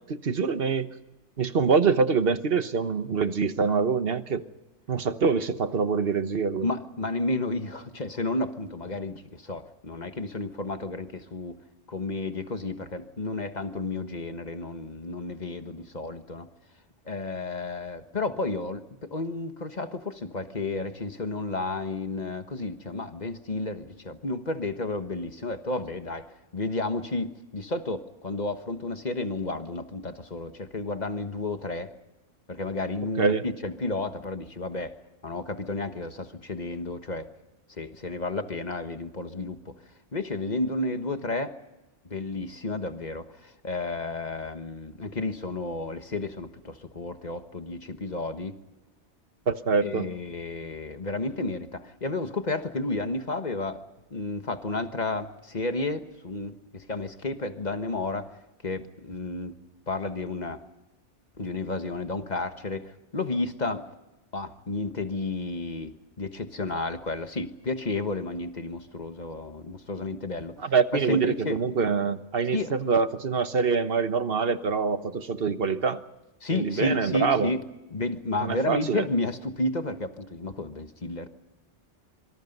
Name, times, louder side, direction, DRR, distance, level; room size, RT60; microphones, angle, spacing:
voice 1, 0.1-0.9 1.4-4.4 4.9-6.7 33.2-33.4 49.5-50.1 70.6-76.0 76.5-77.5 78.4-79.1, right 5 dB, 55° right, 11 dB, 1.3 m, -25 dB
voice 2, 6.6-11.5 11.9-16.5 17.1-26.3 26.5-31.9 32.5-34.9 35.2-37.3 37.8-39.7 40.1-41.5 42.1-48.5 49.8-53.8 54.1-58.3 58.6-59.5 59.9-60.6 61.4-63.9 64.3-71.6 72.5-72.7 76.4-77.6 77.9-81.3, left 2 dB, 40° left, 8 dB, 1.5 m, -32 dB
26.0 x 24.5 x 5.4 m, 1.0 s
omnidirectional pair, 1.2 m